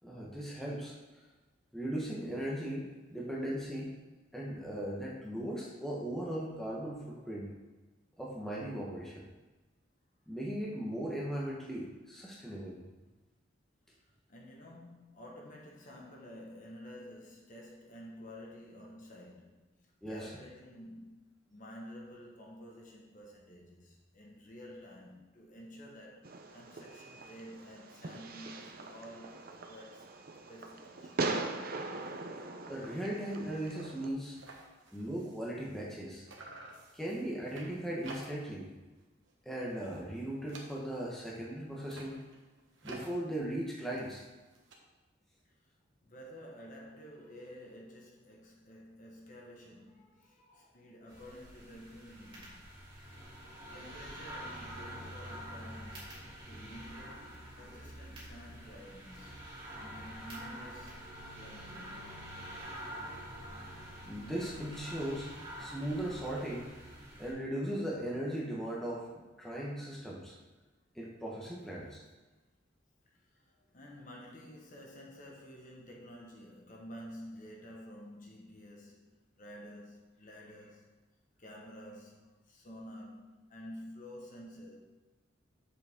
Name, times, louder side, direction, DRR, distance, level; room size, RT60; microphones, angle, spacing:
voice 1, 0.0-0.9 1.7-3.9 4.3-7.5 8.2-9.2 10.3-12.8 20.0-20.3 32.7-34.4 34.9-36.3 36.9-38.7 39.4-42.2 42.8-44.2 64.1-65.3 65.6-66.7 67.2-70.3 70.9-72.0, right 1 dB, ahead, -5 dB, 1.2 m, -38 dB
voice 2, 14.0-19.7 20.1-21.2 21.5-30.1 30.5-31.2 45.6-45.7 46.0-56.1 56.4-62.0 73.1-79.1 79.4-80.9 81.4-84.8, equal, 40° left, -2 dB, 1.4 m, -51 dB
Fireworks, 26.2-34.1, right 3 dB, 50° right, 0.7 m, -41 dB
sound 1, 33.1-33.4 33.7-33.8 34.0-36.0 36.3-38.6 39.0-39.3 39.6-41.2 41.7-44.7, right 2 dB, 65° right, 1.4 m, -52 dB
sound 2, 51.1-67.3, equal, 25° right, 2.9 m, -47 dB
7.9 x 6.8 x 3.7 m, 1.2 s
head